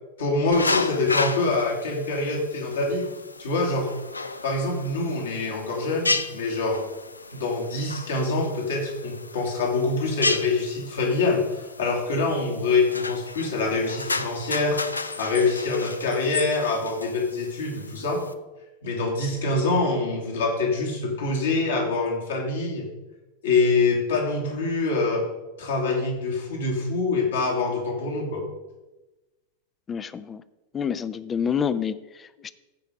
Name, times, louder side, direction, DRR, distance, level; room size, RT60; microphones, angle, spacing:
voice 1, 0.2-3.0 3.4-3.9 4.4-6.8 7.3-14.8 15.2-18.2 18.8-22.9 23.4-25.3 25.6-28.4, left 3 dB, 65° left, -1 dB, 2.7 m, -25 dB
sound 1, 0.5-18.3, left 3 dB, 80° left, 0.5 m, -33 dB
voice 2, 29.9-30.4 30.7-32.5, left 7 dB, 20° left, 16 dB, 0.5 m, -28 dB
15.0 x 5.2 x 5.0 m, 1.1 s
figure-of-eight pair, 90°, 0 cm